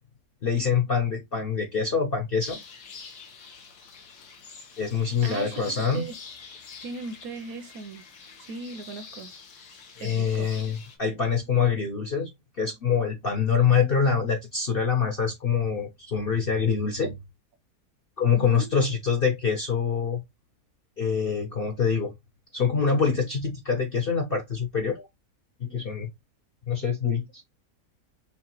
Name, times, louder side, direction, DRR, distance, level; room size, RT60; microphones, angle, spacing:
voice 1, 0.4-2.6 4.8-6.1 10.0-12.3 12.6-17.2 18.2-20.2 21.0-22.1 22.5-25.1 25.6-26.1 26.7-27.3, left 6 dB, 55° left, 0.6 m, -25 dB
sound 1, 2.4-11.0, left 5 dB, 85° left, 1.6 m, -46 dB
voice 2, 5.2-6.1 6.8-8.0 8.5-9.3 10.0-10.5 18.3-18.7, right 4 dB, 70° right, 1.0 m, -37 dB
5.7 x 2.4 x 2.8 m
omnidirectional pair, 1.7 m